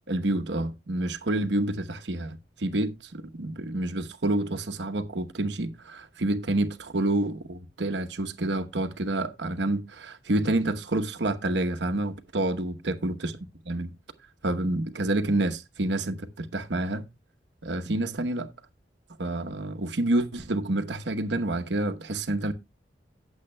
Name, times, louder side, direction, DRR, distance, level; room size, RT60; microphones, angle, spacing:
voice 1, 0.1-13.4 13.7-13.9 14.4-17.0 17.6-18.5 19.2-22.5, right 2 dB, 70° right, 1.0 m, -28 dB
17.5 x 7.3 x 2.2 m
head